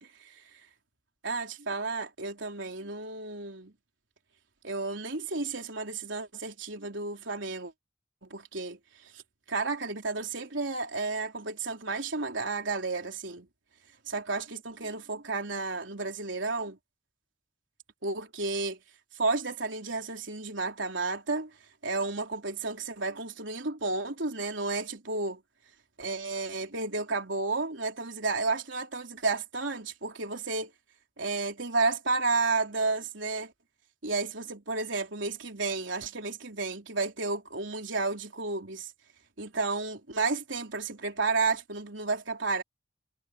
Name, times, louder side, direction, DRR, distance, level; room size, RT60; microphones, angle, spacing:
voice 1, 1.2-3.7 4.6-7.7 8.2-8.8 9.5-13.5 14.1-16.8 18.0-18.8 19.2-21.5 21.8-25.4 26.0-30.7 31.2-33.5 34.0-38.9 39.4-42.6, right 3 dB, 90° right, 3.6 m, -32 dB
head